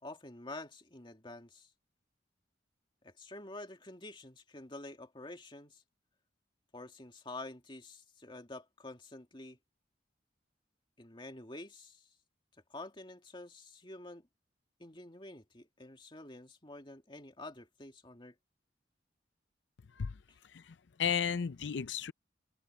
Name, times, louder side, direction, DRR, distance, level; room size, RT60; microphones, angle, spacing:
voice 1, 0.0-1.7 3.0-5.8 6.7-9.6 11.0-12.1 12.7-14.3 14.8-18.4 20.3-20.4, left 2 dB, 25° left, 2.3 m, -48 dB
voice 2, 20.4-22.1, left 7 dB, 75° left, 0.5 m, -34 dB
head